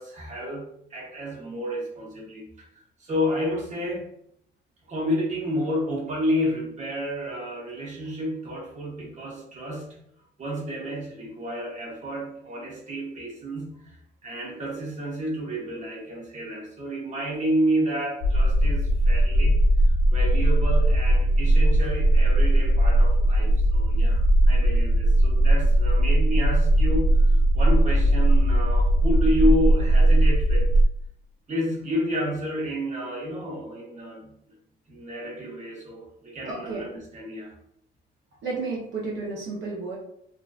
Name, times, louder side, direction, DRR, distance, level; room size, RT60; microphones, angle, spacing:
voice 1, 0.0-2.7 3.0-4.1 4.9-10.0 10.4-30.7 31.5-34.3 34.9-37.5, equal, 35° right, -3 dB, 0.9 m, -30 dB
sound 1, 18.2-30.9, right 1 dB, 70° left, 0.4 m, -19 dB
voice 2, 36.4-36.9 38.4-40.0, right 3 dB, 65° right, -4 dB, 0.7 m, -32 dB
2.6 x 2.1 x 2.4 m, 0.71 s
cardioid pair, 90°, 20 cm